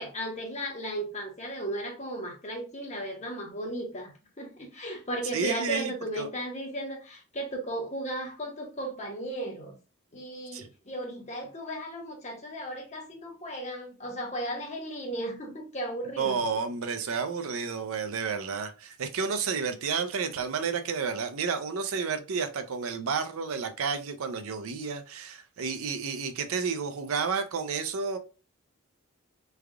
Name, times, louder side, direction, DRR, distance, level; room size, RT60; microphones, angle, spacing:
voice 1, 0.0-4.1 4.4-9.7 10.1-16.4, right 1 dB, 30° left, 0.9 m, -35 dB
voice 2, 5.3-6.3 10.5-10.7 16.2-28.2, right 5 dB, 75° right, 0.5 m, -31 dB
3.3 x 2.3 x 3.5 m
head